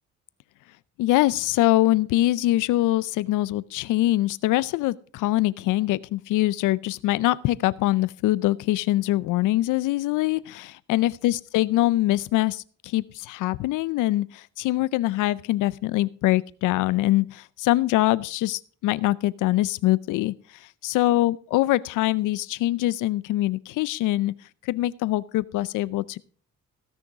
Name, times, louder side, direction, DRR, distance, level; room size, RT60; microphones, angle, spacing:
voice 1, 1.0-20.3 20.8-24.3 24.7-26.2, left 16 dB, 90° left, 21 dB, 0.5 m, -23 dB
16.0 x 6.4 x 4.7 m, 0.43 s
cardioid pair, 90°, 30 cm